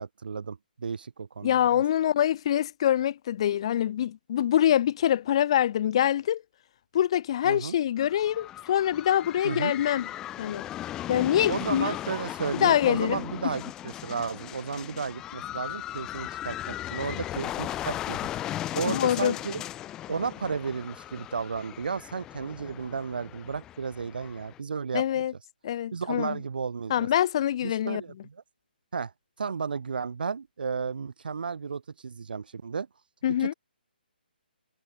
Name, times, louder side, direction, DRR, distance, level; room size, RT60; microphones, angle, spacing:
voice 1, 0.0-1.8 7.4-7.8 9.4-9.7 11.5-18.3 18.7-19.6 20.1-25.0 25.9-27.1 27.6-28.4 28.9-29.1 29.4-32.9 33.4-33.5, right 5 dB, 60° right, 3.8 m, -33 dB
voice 2, 1.4-6.4 6.9-10.1 10.4-10.7 11.1-11.9 12.6-13.2 18.9-19.4 24.9-25.3 25.6-26.4 26.9-28.0 33.2-33.5, left 11 dB, 30° left, 3.8 m, -25 dB
sound 1, 8.0-24.6, left 13 dB, 10° left, 2.5 m, -37 dB
hypercardioid pair, 170°, 5 cm